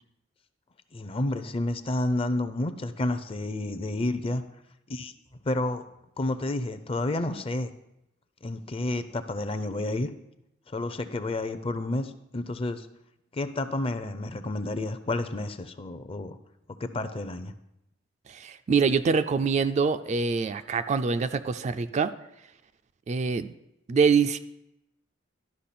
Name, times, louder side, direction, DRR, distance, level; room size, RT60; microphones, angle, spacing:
voice 1, 0.9-4.4 4.9-5.1 5.5-5.8 6.2-7.7 8.4-10.1 10.7-12.9 13.3-16.4 16.8-17.5, left 2 dB, 30° left, 11 dB, 0.5 m, -30 dB
voice 2, 18.3-22.1 23.1-23.5 23.9-24.4, right 5 dB, 35° right, 10 dB, 0.3 m, -25 dB
12.0 x 5.4 x 4.2 m, 0.85 s
head